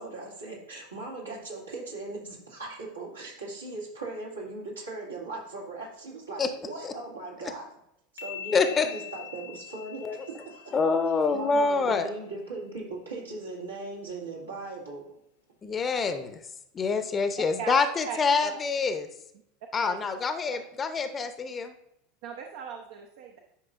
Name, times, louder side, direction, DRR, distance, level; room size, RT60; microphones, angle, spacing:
voice 1, 0.0-7.7 8.1-10.8 11.3-15.0, right 3 dB, 80° right, -4 dB, 2.3 m, -39 dB
sound 1, 8.2-11.7, left 9 dB, 75° left, 1.2 m, -43 dB
voice 2, 8.5-8.9 10.0-10.2 10.7-12.1 15.6-16.4 16.7-19.1 19.7-21.8, left 4 dB, 25° left, 9 dB, 0.8 m, -26 dB
voice 3, 18.1-18.5 19.8-20.2 22.2-23.4, right 7 dB, 60° right, 3 dB, 0.8 m, -38 dB
11.0 x 5.5 x 2.5 m, 0.79 s
figure-of-eight pair, 80°, 0 cm